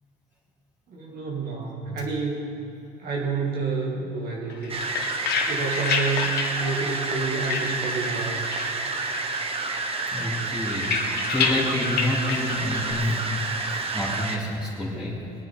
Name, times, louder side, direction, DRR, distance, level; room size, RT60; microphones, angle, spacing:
voice 1, 0.9-2.4 3.0-4.8 5.5-8.5, right 4 dB, 60° right, -3 dB, 2.1 m, -29 dB
sound 1, 4.5-8.2 8.5-9.4 9.7-12.9, left 5 dB, 70° left, 1.8 m, -29 dB
sound 2, 4.7-14.4, right 3 dB, 35° right, 1.2 m, -29 dB
voice 2, 6.6-6.9 10.1-10.9 11.3-13.3 13.9-15.2, left 1 dB, ahead, -10 dB, 3.0 m, -28 dB
21.0 x 9.7 x 4.5 m, 2.9 s
cardioid pair, 110°, 17 cm